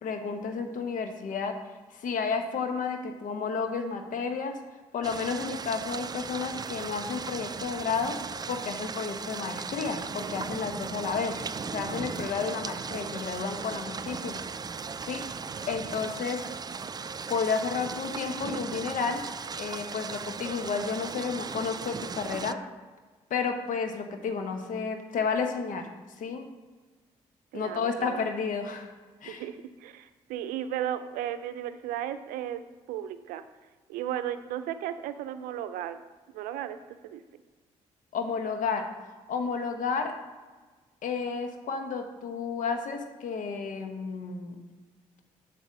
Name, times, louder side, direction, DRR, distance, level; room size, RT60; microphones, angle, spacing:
voice 1, 0.0-1.5 1.9-4.6 4.9-8.2 8.5-11.4 11.7-14.4 15.0-15.2 15.7-16.4 17.3-19.2 19.6-22.6 23.3-25.9 26.2-26.5 27.5-28.9 29.2-29.4 38.1-38.9 39.3-40.1 41.0-44.6, left 5 dB, 65° left, 5 dB, 1.1 m, -31 dB
sound 1, 5.0-22.5, right 5 dB, 25° right, 0.4 m, -37 dB
voice 2, 27.5-28.2 29.2-32.6 32.9-33.4 33.9-36.0 36.3-36.8 37.0-37.2, right 11 dB, 80° right, 11 dB, 0.5 m, -35 dB
8.0 x 4.0 x 6.5 m, 1.3 s
hypercardioid pair, 50°, 14 cm